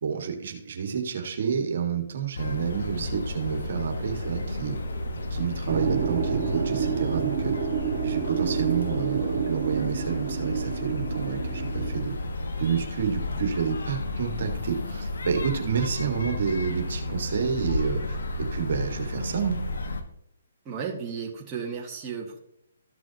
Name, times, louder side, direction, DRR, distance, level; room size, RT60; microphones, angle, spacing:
voice 1, 0.0-4.8 5.3-7.6 8.0-12.2 12.6-19.6, right 7 dB, 60° right, 4 dB, 1.8 m, -29 dB
sound 1, 2.3-20.0, left 2 dB, 75° left, 1.6 m, -32 dB
sound 2, 3.0-17.5 17.8-18.4, left 2 dB, 50° left, 4.1 m, -49 dB
sound 3, 5.7-12.0, right 7 dB, 40° right, 2.6 m, -29 dB
voice 2, 20.7-22.4, right 6 dB, 20° right, -4 dB, 1.8 m, -34 dB
14.0 x 6.2 x 3.0 m, 0.75 s
hypercardioid pair, 145°, 0 cm